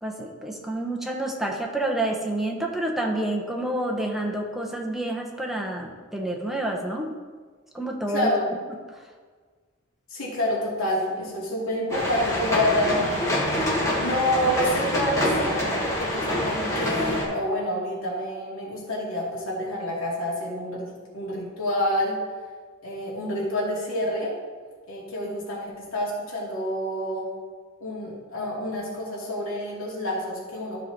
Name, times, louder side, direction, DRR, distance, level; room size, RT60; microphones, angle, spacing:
voice 1, 0.0-7.1 7.7-8.3, right 1 dB, ahead, -1 dB, 1.0 m, -28 dB
voice 2, 8.1-8.5 10.1-13.7 14.0-22.2 22.8-24.3 24.9-27.3 27.8-30.8, left 1 dB, 85° left, -5 dB, 2.6 m, -28 dB
sound 1, 11.9-17.2, left 1 dB, 15° left, 2.3 m, -26 dB
12.5 x 4.9 x 4.1 m, 1.5 s
head